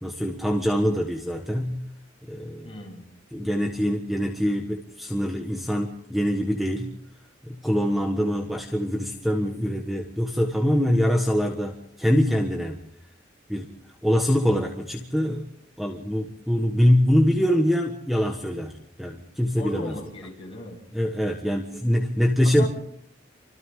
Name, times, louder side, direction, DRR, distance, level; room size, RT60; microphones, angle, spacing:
voice 1, 0.0-1.8 2.3-2.7 3.3-7.0 7.4-12.8 13.5-13.7 14.0-15.5 15.8-18.7 19.0-19.9 20.9-22.6, equal, ahead, 2 dB, 1.4 m, -24 dB
voice 2, 2.6-3.0 19.5-20.8 22.4-22.7, left 1 dB, 30° left, -2 dB, 7.9 m, -37 dB
28.5 x 25.5 x 3.8 m, 0.70 s
head